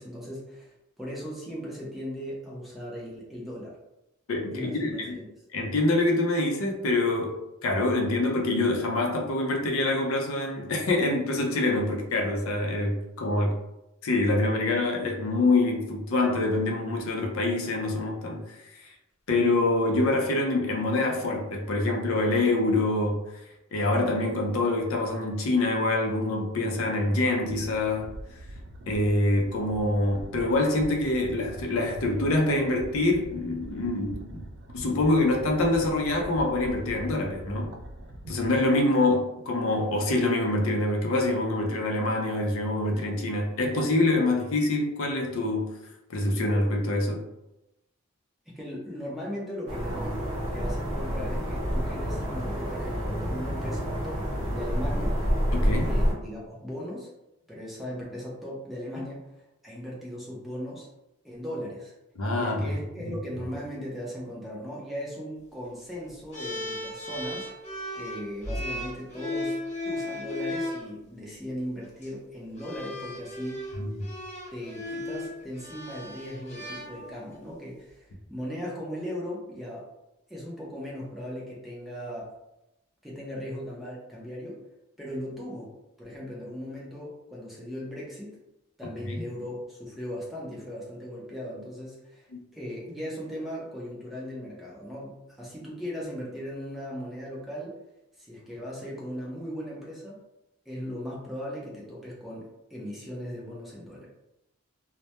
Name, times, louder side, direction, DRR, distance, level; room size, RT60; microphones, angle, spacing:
voice 1, 0.0-3.8 4.5-5.2 48.5-50.2 50.5-54.2 54.5-55.2 55.8-57.1 57.5-60.9 61.2-61.9 62.3-67.5 67.9-73.6 74.5-79.9 80.3-82.3 83.0-84.6 85.0-85.7 86.0-88.4 88.8-97.8 98.2-100.2 100.7-104.1, equal, ahead, -6 dB, 0.5 m, -38 dB
voice 2, 4.3-5.1 5.5-7.4 7.6-13.5 14.0-18.4 19.3-23.2 23.7-28.1 28.9-34.5 34.7-37.7 38.3-45.8 46.1-47.2 55.5-55.9 62.2-62.8 63.1-63.2 73.8-73.9 89.0-89.2, left 2 dB, 80° left, 0 dB, 0.5 m, -25 dB
sound 1, 27.4-38.8, right 1 dB, 55° right, 0.3 m, -43 dB
sound 2, 49.7-56.1, equal, 40° right, 0.8 m, -28 dB
sound 3, 66.3-70.8 71.8-72.1 72.6-77.4, left 1 dB, 35° left, 0.8 m, -36 dB
2.1 x 2.1 x 2.8 m, 0.92 s
head